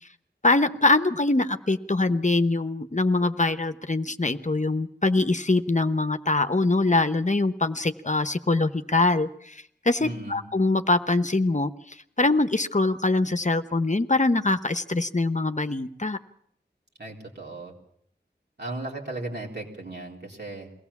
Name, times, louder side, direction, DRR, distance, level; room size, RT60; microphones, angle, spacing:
voice 1, 0.4-16.2, left 2 dB, 45° left, 10 dB, 0.9 m, -23 dB
voice 2, 10.0-10.4 17.0-17.7 18.6-20.7, right 2 dB, 70° right, -2 dB, 4.0 m, -36 dB
22.5 x 16.5 x 7.2 m, 0.69 s
wide cardioid pair, 50°, 18 cm